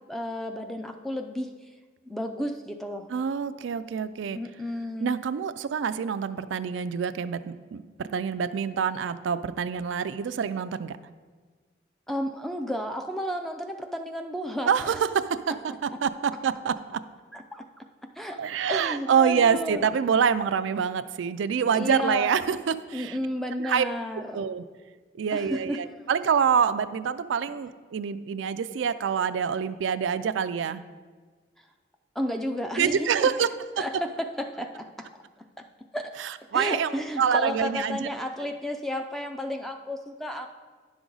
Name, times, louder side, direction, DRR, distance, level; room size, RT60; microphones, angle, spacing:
voice 1, 0.1-1.5 2.1-3.1 4.3-5.1 12.1-15.0 17.3-17.7 18.2-18.4 18.7-19.8 21.7-22.4 22.9-24.5 25.3-25.8 32.2-33.3 33.8-35.1 35.4-35.6 35.9-36.1 36.5-40.5, equal, ahead, 4 dB, 0.4 m, -32 dB
voice 2, 3.1-4.4 5.0-11.0 14.7-15.5 15.8-17.0 18.4-23.2 23.6-23.9 24.3-24.6 25.1-30.8 32.8-33.5 36.2-38.1, right 7 dB, 75° right, 12 dB, 0.3 m, -26 dB
10.5 x 6.1 x 3.9 m, 1.4 s
head